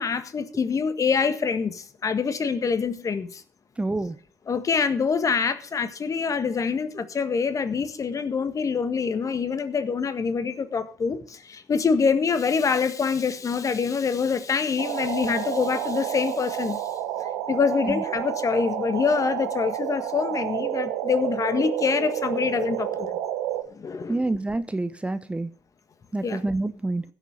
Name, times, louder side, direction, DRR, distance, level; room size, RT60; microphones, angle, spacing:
voice 1, 0.0-3.4 4.5-16.9 17.5-23.1 23.7-24.2 26.2-26.4, left 5 dB, 40° left, 11 dB, 1.6 m, -25 dB
voice 2, 3.8-4.2 17.9-18.0 24.1-25.5 26.1-27.0, right 2 dB, 15° right, 13 dB, 0.8 m, -27 dB
sound 1, 14.8-23.6, right 11 dB, 75° right, 1.4 m, -30 dB
16.0 x 7.2 x 5.2 m, 0.44 s
hypercardioid pair, 55°, 9 cm